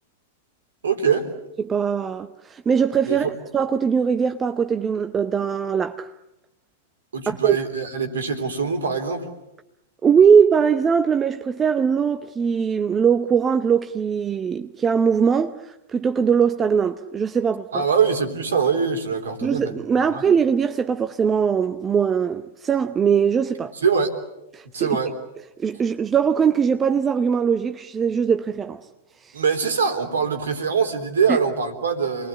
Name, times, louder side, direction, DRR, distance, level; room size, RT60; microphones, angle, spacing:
voice 1, 0.8-1.3 3.1-3.3 7.1-9.3 17.7-19.7 20.1-20.2 23.8-24.1 24.7-25.1 29.3-32.3, right 6 dB, 70° right, 3.6 m, -23 dB
voice 2, 1.6-3.3 3.5-6.1 7.3-7.6 10.0-17.8 19.4-23.7 24.5-25.0 25.6-28.8 29.2-29.3 31.3-31.4, right 6 dB, 20° right, 0.9 m, -21 dB
28.5 x 21.5 x 8.3 m
figure-of-eight pair, 95°, 0 cm